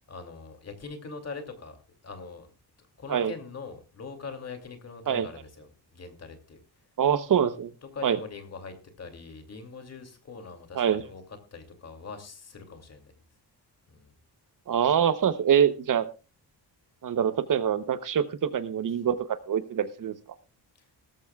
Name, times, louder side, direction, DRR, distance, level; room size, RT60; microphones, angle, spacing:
voice 1, 0.1-1.8 2.0-2.5 2.8-6.6 7.8-11.2 11.5-13.1 13.9-14.1, left 4 dB, 40° left, 6 dB, 2.6 m, -42 dB
voice 2, 7.0-7.7 8.0-8.2 10.7-11.0 14.7-16.1 17.0-20.1, right 8 dB, 50° right, 12 dB, 0.9 m, -25 dB
18.0 x 14.0 x 2.3 m, 0.32 s
wide cardioid pair, 175°, 41 cm